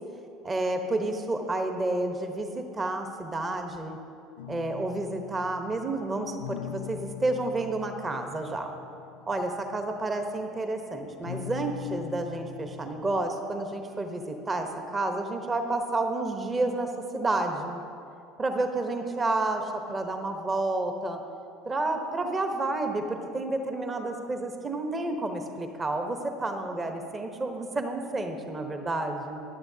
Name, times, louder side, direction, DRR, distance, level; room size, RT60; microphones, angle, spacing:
voice 1, 0.4-4.0 4.5-8.7 9.3-17.8 18.4-21.2 21.7-29.4, right 2 dB, 30° right, 5 dB, 1.0 m, -30 dB
sound 1, 4.4-10.8 11.2-13.2, left 11 dB, 85° left, 0.4 m, -42 dB
15.0 x 10.5 x 2.8 m, 2.6 s
hypercardioid pair, 70°, 0 cm